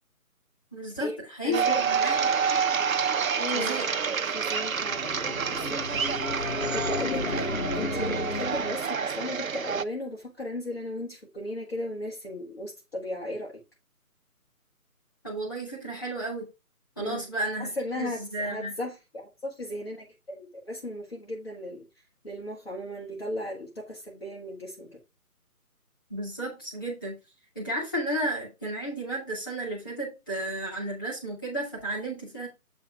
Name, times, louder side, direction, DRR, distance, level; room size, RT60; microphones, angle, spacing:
voice 1, 0.7-2.2 2.5-2.6 3.5-3.9 15.2-16.4 17.0-18.7 26.1-27.1 27.6-32.5, right 1 dB, 15° left, 1.9 m, -33 dB
voice 2, 1.4-1.8 3.4-3.8 4.3-6.1 6.7-13.6 17.0-17.3 17.6-21.8 22.2-25.0, left 1 dB, 40° left, 1.6 m, -36 dB
sound 1, 1.5-9.8, right 6 dB, 60° right, 0.6 m, -28 dB
sound 2, 4.4-9.0, left 3 dB, 65° left, 1.9 m, -33 dB
8.1 x 3.5 x 4.7 m
figure-of-eight pair, 175°, 46 cm